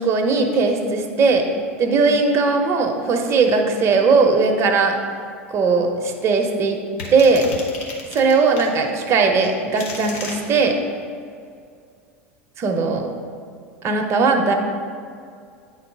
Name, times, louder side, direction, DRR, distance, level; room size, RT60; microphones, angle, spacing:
voice 1, 0.0-1.4 1.8-4.9 5.5-6.8 7.1-7.4 8.1-10.7 12.6-13.0 13.8-14.5, right 4 dB, 40° right, 3 dB, 1.0 m, -18 dB
sound 1, 7.0-8.7 9.4-10.4, left 4 dB, 70° left, 1.3 m, -33 dB
9.2 x 4.0 x 4.7 m, 2.3 s
hypercardioid pair, 90°, 7 cm